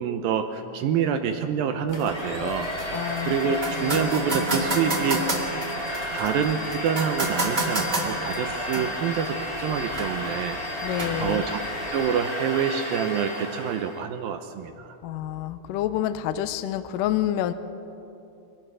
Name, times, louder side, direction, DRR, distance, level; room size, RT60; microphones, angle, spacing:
voice 1, 0.0-2.7 3.3-5.2 6.1-10.6 11.2-11.6 11.9-15.0, right 7 dB, 75° right, 7 dB, 2.3 m, -27 dB
Domestic sounds home sounds, 1.9-14.0, left 1 dB, 60° left, 0.4 m, -32 dB
sound 1, 1.9-11.9, right 2 dB, 25° right, 1.4 m, -32 dB
voice 2, 2.9-4.1 10.8-11.4 15.0-17.5, left 12 dB, 85° left, 11 dB, 1.9 m, -28 dB
24.0 x 17.5 x 6.2 m, 2.9 s
omnidirectional pair, 4.7 m